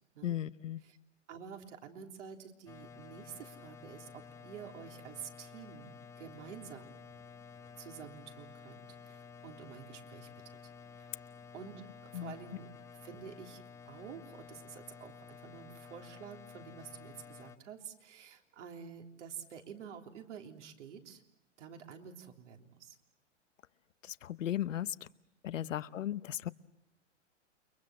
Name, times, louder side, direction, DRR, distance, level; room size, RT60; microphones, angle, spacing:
voice 1, 0.2-0.8 12.1-12.4 24.0-24.9 25.4-26.5, left 11 dB, 85° left, 15 dB, 1.0 m, -36 dB
voice 2, 1.3-6.9 7.8-10.6 10.9-11.1 11.5-12.7 13.0-21.2 21.6-23.0 25.6-25.8, right 7 dB, 70° right, 3 dB, 3.6 m, -49 dB
sound 1, 2.7-17.6, left 5 dB, 10° left, 0.9 m, -52 dB
29.5 x 23.0 x 7.5 m, 0.79 s
hypercardioid pair, 125°, 37 cm